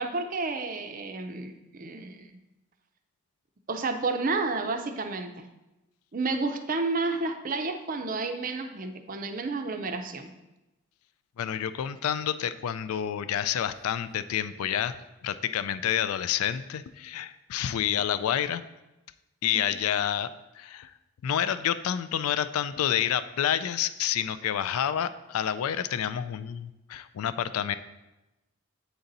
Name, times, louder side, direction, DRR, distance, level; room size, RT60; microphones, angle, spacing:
voice 1, 0.0-2.3 3.7-5.5 6.1-10.3, right 3 dB, 40° right, 7 dB, 0.5 m, -31 dB
voice 2, 11.4-15.0 15.2-18.6 19.4-20.3 20.5-20.9 21.2-27.8, left 9 dB, 85° left, 13 dB, 0.3 m, -29 dB
8.0 x 4.1 x 3.9 m, 1.0 s
head